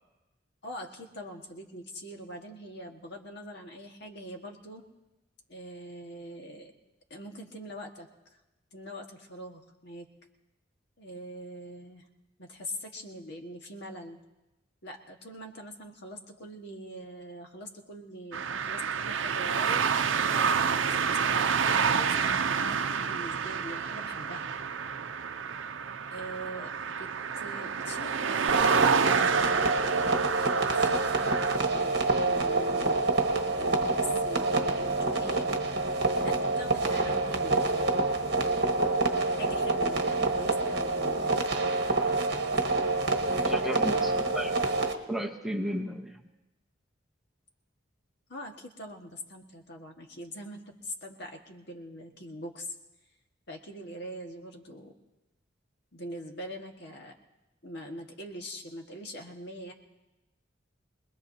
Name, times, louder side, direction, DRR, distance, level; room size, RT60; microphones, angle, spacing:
voice 1, 0.6-4.8 5.5-6.7 7.1-8.1 8.7-10.1 11.0-12.0 12.4-14.2 14.8-19.9 20.3-24.5 26.1-27.1 27.3-29.6 30.4-31.4 31.7-33.0 33.6-35.5 36.1-37.6 39.2-41.3 43.2-44.1 48.3-52.7 53.5-54.9 55.9-57.1 57.6-59.7, equal, 60° left, 2 dB, 1.7 m, -43 dB
sound 1, 18.3-31.6, right 6 dB, 80° right, 0.6 m, -28 dB
sound 2, 28.5-44.9, right 3 dB, 55° right, 1.3 m, -27 dB
voice 2, 43.5-44.5 45.1-46.2, equal, ahead, 0 dB, 1.0 m, -33 dB
24.5 x 20.5 x 2.8 m, 1.0 s
head